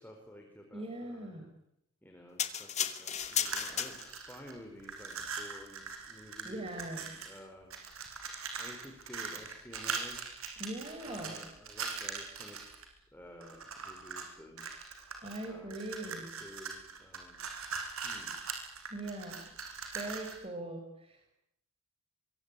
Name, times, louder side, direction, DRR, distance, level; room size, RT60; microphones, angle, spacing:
voice 1, 0.0-1.3 2.0-7.7 8.6-10.3 11.0-12.6 12.9-14.7 15.4-17.4 18.0-18.4, left 1 dB, 10° left, 3 dB, 4.8 m, -52 dB
voice 2, 0.7-1.5 6.4-7.0 10.6-11.4 15.2-16.3 18.9-19.4 19.9-21.3, right 1 dB, 25° right, 4 dB, 4.9 m, -41 dB
sound 1, 2.4-4.4 5.0-5.2, left 8 dB, 35° left, 2.5 m, -34 dB
sound 2, 3.2-4.5 4.8-7.4 7.7-12.8 13.4-14.3 14.6-20.4, right 5 dB, 85° right, 6.3 m, -41 dB
25.0 x 24.0 x 9.9 m, 0.79 s
head